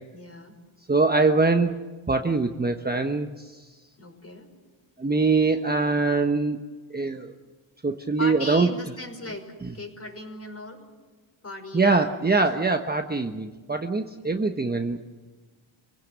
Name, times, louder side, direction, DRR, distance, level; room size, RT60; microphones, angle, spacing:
voice 1, 0.1-0.5 4.0-4.5 8.2-9.5 9.7-10.9 11.4-12.2, left 2 dB, 30° left, 4 dB, 5.4 m, -37 dB
voice 2, 0.9-1.8 2.1-3.6 5.0-7.3 7.8-8.7 11.7-15.0, right 3 dB, 20° right, 5 dB, 1.2 m, -23 dB
28.5 x 17.5 x 8.2 m, 1.3 s
cardioid pair, 95°, 49 cm